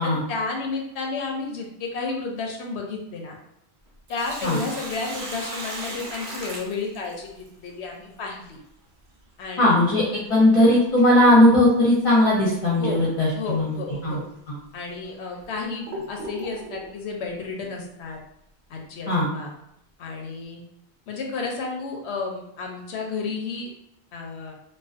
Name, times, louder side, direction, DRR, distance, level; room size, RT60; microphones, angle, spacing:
voice 1, 0.0-3.4 4.1-8.6 9.4-9.8 12.8-13.0 13.3-14.2 14.7-18.2 18.7-19.5 20.0-20.6 21.1-23.7 24.1-24.5, left 4 dB, 85° left, 1 dB, 0.8 m, -32 dB
Sink (filling or washing), 3.9-7.5 9.9-10.0 11.8-12.1 12.6-12.7 13.4-13.6 14.3-14.4 15.0-16.9, right 1 dB, 75° right, 0.9 m, -36 dB
voice 2, 9.6-14.2 19.1-19.3, left 1 dB, 55° left, -5 dB, 0.8 m, -18 dB
2.4 x 2.2 x 2.4 m, 0.78 s
omnidirectional pair, 1.1 m